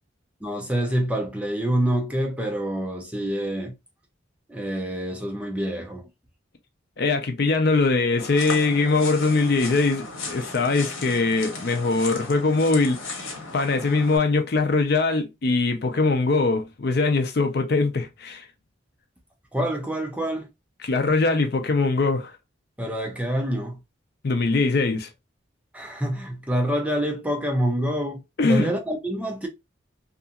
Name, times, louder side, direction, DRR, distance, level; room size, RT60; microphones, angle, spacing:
voice 1, 0.4-3.7 4.5-6.1 19.5-20.5 22.8-23.8 25.7-28.2 28.5-29.5, equal, 5° right, 0.4 m, -26 dB
voice 2, 7.0-13.0 13.5-18.5 20.8-22.3 24.2-25.1 28.4-28.7, left 3 dB, 50° left, 0.5 m, -22 dB
sound 1, 8.2-14.2, left 3 dB, 85° left, 0.9 m, -36 dB
2.8 x 2.5 x 2.3 m
head